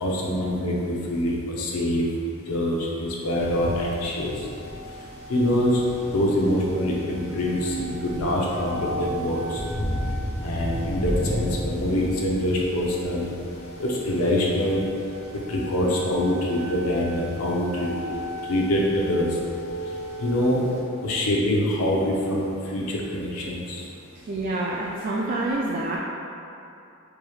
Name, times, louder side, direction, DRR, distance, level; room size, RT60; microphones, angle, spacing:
voice 1, 0.0-2.1 2.5-4.3 5.3-5.8 6.1-9.6 10.4-13.3 13.8-14.8 15.3-18.2 18.5-19.3 20.2-20.6 21.0-23.8, left 1 dB, 90° left, -3 dB, 0.7 m, -25 dB
sound 1, 3.3-20.8, equal, 30° left, 0.6 m, -34 dB
voice 2, 24.3-26.0, right 2 dB, 40° right, -4 dB, 0.3 m, -27 dB
4.5 x 3.2 x 2.3 m, 2.7 s
head